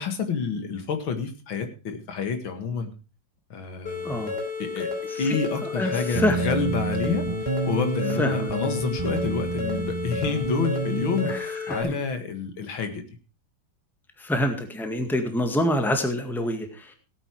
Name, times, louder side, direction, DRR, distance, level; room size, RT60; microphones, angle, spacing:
voice 1, 0.0-2.9 3.5-4.3 4.6-4.9 5.2-13.0, left 5 dB, 80° left, 7 dB, 2.6 m, -29 dB
sound 1, 3.9-11.8, left 4 dB, 55° left, 3.9 m, -32 dB
voice 2, 4.0-4.3 5.1-5.2 5.7-6.4 8.2-8.5 11.2-11.9 14.2-16.9, equal, ahead, 6 dB, 1.7 m, -26 dB
sound 2, 6.1-11.3, right 5 dB, 30° right, 0.5 m, -29 dB
17.0 x 8.7 x 4.7 m, 0.33 s
omnidirectional pair, 2.2 m